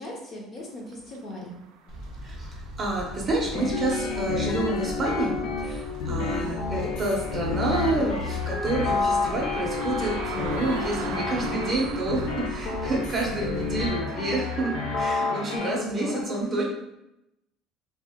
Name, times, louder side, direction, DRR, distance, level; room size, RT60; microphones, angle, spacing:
voice 1, 0.0-1.6 6.1-6.5 15.5-16.6, left 1 dB, 25° left, -2 dB, 0.6 m, -36 dB
sound 1, 0.9-15.6, right 6 dB, 65° right, 0.3 m, -42 dB
Fire, 1.9-13.9, equal, 50° left, 0.8 m, -39 dB
voice 2, 2.2-16.6, right 2 dB, 20° right, -2 dB, 0.6 m, -29 dB
sound 2, 3.5-15.7, left 4 dB, 75° left, 0.6 m, -30 dB
3.0 x 2.8 x 3.5 m, 0.86 s
cardioid pair, 175°, 0 cm